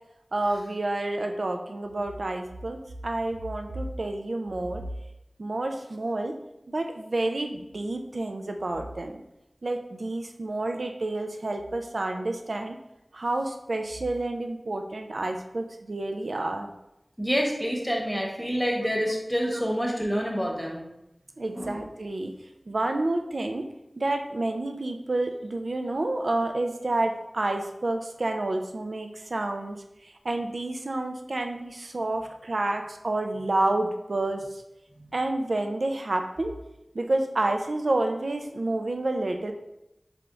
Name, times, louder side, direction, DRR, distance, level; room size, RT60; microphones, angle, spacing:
voice 1, 0.3-4.8 5.4-6.4 6.7-9.2 9.6-12.8 13.1-16.7 21.4-22.4 22.7-23.7 24.0-34.6 35.1-36.5 36.9-39.5, right 2 dB, 75° right, 5 dB, 0.4 m, -29 dB
voice 2, 17.2-20.8 21.6-21.8, equal, ahead, -1 dB, 1.0 m, -27 dB
3.5 x 3.4 x 3.8 m, 0.89 s
wide cardioid pair, 60°, 0 cm